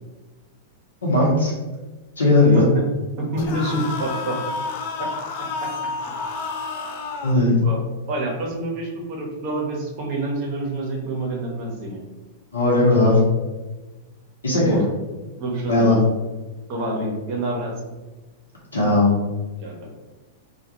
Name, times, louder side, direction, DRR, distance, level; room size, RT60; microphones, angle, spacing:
voice 1, 1.0-1.5 2.2-2.7 7.2-7.6 12.5-13.2 14.4-14.8 15.7-16.0 18.7-19.1, left 2 dB, 85° left, -5 dB, 0.7 m, -17 dB
voice 2, 2.4-2.8 3.2-4.4 5.0-5.1 5.6-5.7 7.6-7.8 8.1-12.0 14.7-14.8 15.4-16.0 16.7-17.7 19.6-19.7, right 1 dB, 45° right, -1 dB, 0.7 m, -27 dB
sound 1, 3.4-7.4, left 4 dB, 55° left, 0.3 m, -30 dB
2.2 x 2.2 x 2.8 m, 1.2 s
hypercardioid pair, 100°, 0 cm